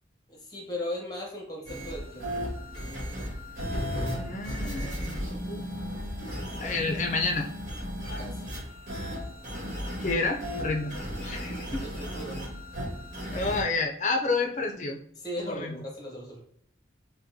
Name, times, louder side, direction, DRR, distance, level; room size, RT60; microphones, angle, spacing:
voice 1, 0.3-2.3 8.2-8.5 11.8-12.5 15.2-16.4, left 1 dB, 20° left, -1 dB, 1.0 m, -37 dB
sound 1, 1.7-13.6, equal, 45° right, 1.5 m, -35 dB
voice 2, 4.2-5.6 6.6-7.5 10.0-10.9 11.2-11.8 13.3-15.0 15.4-15.7, left 3 dB, 40° left, 2 dB, 0.5 m, -29 dB
5.1 x 2.2 x 2.7 m, 0.68 s
head